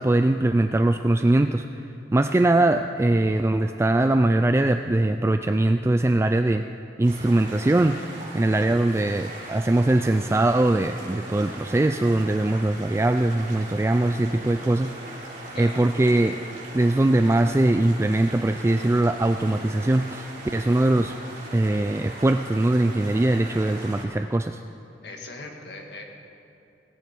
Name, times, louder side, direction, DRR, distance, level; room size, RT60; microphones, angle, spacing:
voice 1, 0.0-1.7 2.1-6.7 7.0-14.9 15.3-16.4 16.7-21.2 21.5-24.6, right 2 dB, 15° right, 8 dB, 0.3 m, -21 dB
sound 1, 7.0-24.0, right 2 dB, 45° right, 4.2 m, -40 dB
voice 2, 23.4-23.8 25.0-26.0, left 2 dB, 65° left, 2 dB, 1.8 m, -40 dB
17.5 x 17.0 x 4.4 m, 2.8 s
head